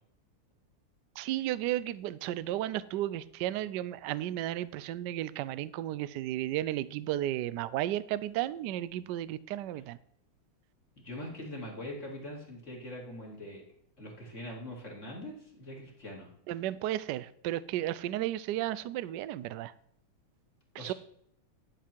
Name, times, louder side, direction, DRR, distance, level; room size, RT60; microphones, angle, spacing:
voice 1, 1.2-10.0 16.5-19.7 20.7-20.9, right 13 dB, 85° right, 16 dB, 0.9 m, -33 dB
voice 2, 11.0-13.6 14.0-16.3 20.8-20.9, left 1 dB, 35° left, -2 dB, 2.8 m, -42 dB
12.0 x 7.0 x 4.5 m, 0.70 s
omnidirectional pair, 2.4 m